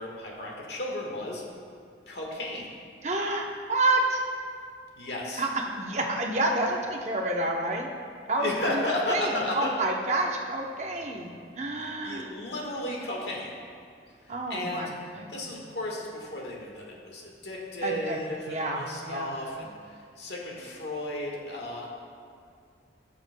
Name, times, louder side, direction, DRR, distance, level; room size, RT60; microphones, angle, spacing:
voice 1, 0.0-1.4 2.1-2.7 5.0-5.4 8.4-9.7 11.8-13.5 14.2-14.9 15.3-21.9, left 1 dB, 70° left, -2 dB, 1.5 m, -34 dB
voice 2, 3.0-4.2 5.4-5.5 5.7-7.9 8.3-8.8 9.1-12.3 14.3-15.6 17.8-18.2 18.5-19.3, right 2 dB, 40° right, 0 dB, 0.8 m, -29 dB
15.0 x 7.0 x 2.2 m, 2.2 s
head